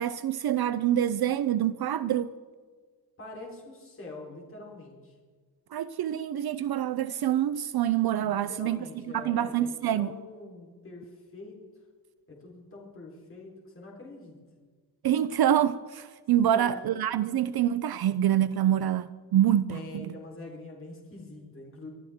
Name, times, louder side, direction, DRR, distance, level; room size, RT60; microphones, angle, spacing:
voice 1, 0.0-2.3 5.7-8.8 9.1-10.1 15.0-20.1, right 11 dB, 60° right, 0.5 m, -26 dB
voice 2, 3.2-5.2 8.2-11.6 12.3-14.4 16.5-16.9 17.1-17.4 19.7-21.9, left 2 dB, 30° left, 3.7 m, -44 dB
25.0 x 13.0 x 3.6 m
wide cardioid pair, 160°, 43 cm